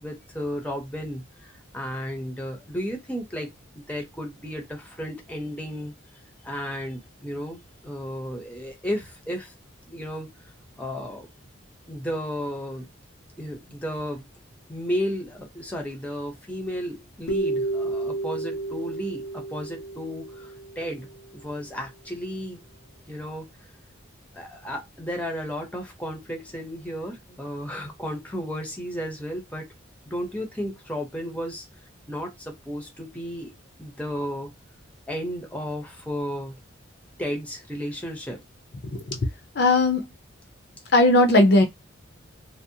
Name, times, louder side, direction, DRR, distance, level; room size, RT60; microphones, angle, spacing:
voice 1, 0.0-5.9 6.4-9.5 9.9-10.3 10.8-11.3 11.9-12.9 13.4-14.2 14.7-21.1 21.3-22.6 23.1-23.5 24.3-29.7 30.1-31.7 32.1-34.5 35.1-36.6 37.2-38.4, equal, 5° left, 0.6 m, -33 dB
sound 1, 17.3-21.3, right 2 dB, 90° left, 0.8 m, -31 dB
voice 2, 39.5-40.1 40.9-41.6, left 2 dB, 55° left, 0.5 m, -17 dB
2.6 x 2.0 x 2.6 m
head